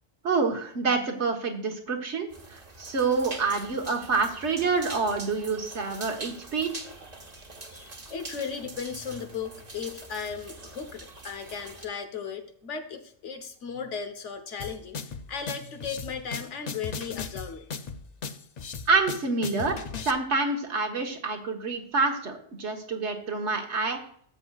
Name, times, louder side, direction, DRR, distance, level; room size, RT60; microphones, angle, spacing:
voice 1, 0.2-6.9 18.9-19.8 20.0-24.0, right 4 dB, 70° right, 4 dB, 1.5 m, -27 dB
sound 1, 2.3-11.9, right 2 dB, 35° right, 1.3 m, -44 dB
voice 2, 7.7-17.7, left 6 dB, 75° left, 8 dB, 1.3 m, -36 dB
sound 2, 14.6-20.1, left 5 dB, 50° left, 0.5 m, -37 dB
12.5 x 7.8 x 2.4 m, 0.62 s
omnidirectional pair, 1.2 m